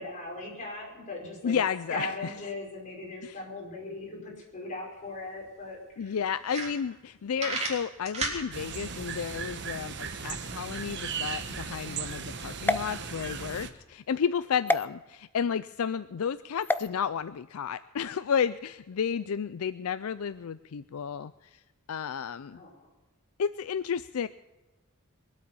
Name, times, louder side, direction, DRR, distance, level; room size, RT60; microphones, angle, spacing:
voice 1, 0.0-1.6 1.9-6.1 22.5-22.9, left 2 dB, 35° left, -2 dB, 5.3 m, -39 dB
voice 2, 1.4-2.3 3.2-3.4 6.0-21.6 21.9-22.6 23.4-24.3, left 7 dB, 75° left, 14 dB, 0.4 m, -32 dB
sound 1, 5.0-5.1 5.4-5.5 6.0-6.1 6.4-7.1 7.4-8.4, right 3 dB, 30° right, 3.4 m, -32 dB
sound 2, 8.5-13.7, right 5 dB, 55° right, 1.2 m, -37 dB
sound 3, 12.6-13.6 14.7-14.8 16.6-16.9, left 2 dB, 10° left, 0.4 m, -29 dB
23.0 x 8.3 x 7.0 m, 1.1 s
head